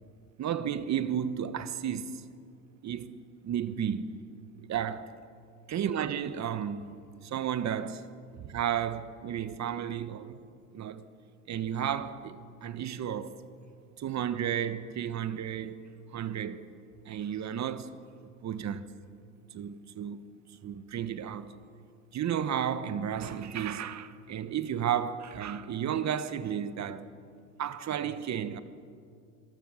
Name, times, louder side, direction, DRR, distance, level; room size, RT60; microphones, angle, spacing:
voice 1, 0.4-2.2 2.8-4.2 4.7-5.1 5.7-6.8 7.2-8.0 8.4-10.4 10.7-11.1 11.5-13.4 14.0-16.7 17.1-17.9 18.4-18.8 19.5-20.2 20.6-21.5 22.1-27.1 27.6-28.6, right 9 dB, 45° right, 1.3 m, -33 dB
26.0 x 19.0 x 6.4 m
hypercardioid pair, 75°, 40 cm